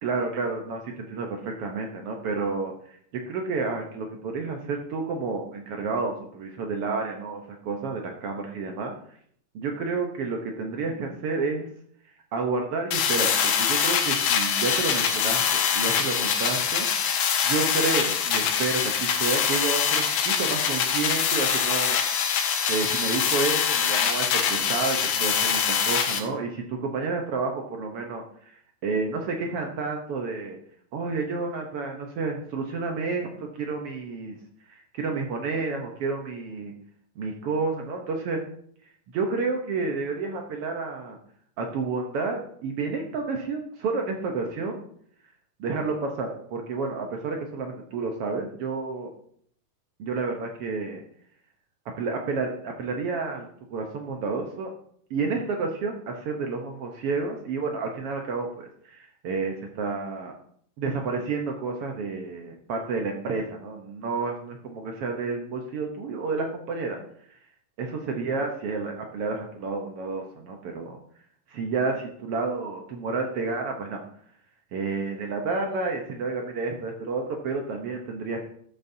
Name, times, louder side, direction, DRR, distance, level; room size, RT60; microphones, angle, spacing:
voice 1, 0.0-2.7 3.1-8.9 9.5-11.7 12.3-22.0 22.7-28.5 28.8-30.6 30.9-34.4 34.7-36.7 37.2-38.4 39.1-41.2 41.6-44.8 45.6-49.1 50.0-51.0 52.0-54.7 55.1-60.3 60.8-67.0 67.8-71.0 71.5-74.0 74.7-78.4, right 4 dB, 70° right, 2 dB, 1.4 m, -30 dB
sound 1, 12.9-26.2, left 7 dB, 80° left, 2.6 m, -24 dB
13.5 x 7.9 x 2.7 m, 0.63 s
omnidirectional pair, 3.8 m